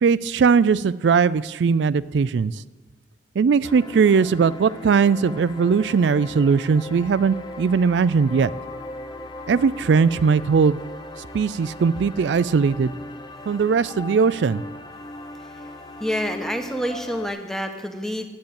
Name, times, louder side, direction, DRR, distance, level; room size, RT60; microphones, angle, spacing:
voice 1, 0.0-2.5 3.4-8.5 9.5-10.8 11.3-12.9 13.5-14.6, right 5 dB, 80° right, 16 dB, 0.4 m, -19 dB
sound 1, 3.6-17.3, left 1 dB, 25° left, 0.8 m, -38 dB
voice 2, 16.0-18.3, equal, 5° left, 5 dB, 1.0 m, -28 dB
10.5 x 8.5 x 8.7 m, 1.4 s
head